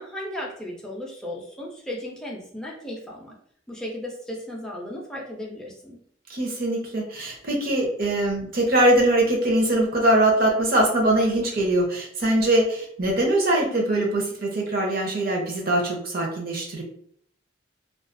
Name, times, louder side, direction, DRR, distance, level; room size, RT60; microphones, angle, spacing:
voice 1, 0.0-3.4 3.7-6.0, left 1 dB, 5° left, -3 dB, 0.5 m, -35 dB
voice 2, 6.3-16.8, right 1 dB, 50° right, 0 dB, 0.7 m, -22 dB
2.3 x 2.3 x 2.5 m, 0.62 s
head